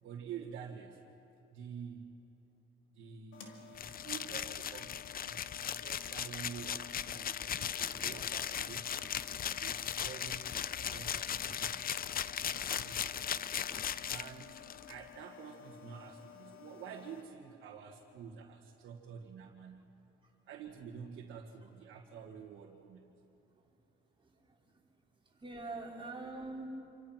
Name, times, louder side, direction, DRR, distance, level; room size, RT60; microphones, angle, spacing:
voice 1, 0.0-1.0 1.5-2.2 2.9-5.4 5.7-8.9 9.3-10.5 10.8-12.1 12.4-13.5 14.1-19.9 20.5-23.0, right 7 dB, 80° right, -2 dB, 1.9 m, -49 dB
sound 1, 3.3-17.2, left 10 dB, 85° left, 2.4 m, -55 dB
sound 2, 3.8-14.9, left 9 dB, 45° left, 0.6 m, -38 dB
Gunshot gunfire, 7.8-8.5 9.0-9.7 10.5-10.9 11.5-11.9 12.7-13.2 13.7-14.1, equal, 5° left, 4.7 m, -57 dB
voice 2, 24.2-25.0 25.2-26.6, right 3 dB, 25° right, -2 dB, 4.8 m, -45 dB
27.5 x 26.5 x 6.0 m, 2.9 s
cardioid pair, 90°, 20 cm